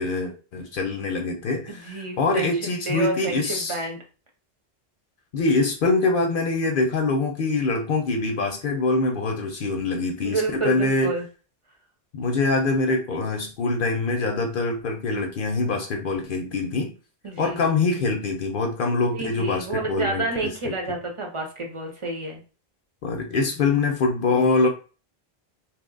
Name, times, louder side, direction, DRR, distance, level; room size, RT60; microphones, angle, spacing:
voice 1, 0.0-3.8 5.3-11.1 12.1-16.9 17.4-20.2 20.6-20.7 23.0-24.7, left 3 dB, 60° left, 3 dB, 0.7 m, -24 dB
voice 2, 1.7-2.5 2.9-4.0 10.2-11.3 17.2-17.6 19.1-22.4, right 2 dB, 35° right, 1 dB, 0.7 m, -29 dB
2.9 x 2.1 x 3.8 m, 0.36 s
omnidirectional pair, 1.1 m